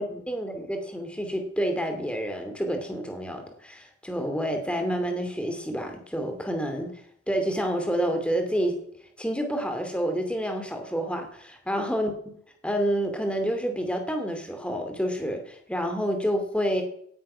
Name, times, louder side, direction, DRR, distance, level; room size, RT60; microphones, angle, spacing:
voice 1, 0.1-6.9 7.3-8.8 9.2-12.1 12.6-16.8, equal, 5° left, 5 dB, 2.4 m, -28 dB
17.5 x 9.5 x 5.6 m, 0.67 s
head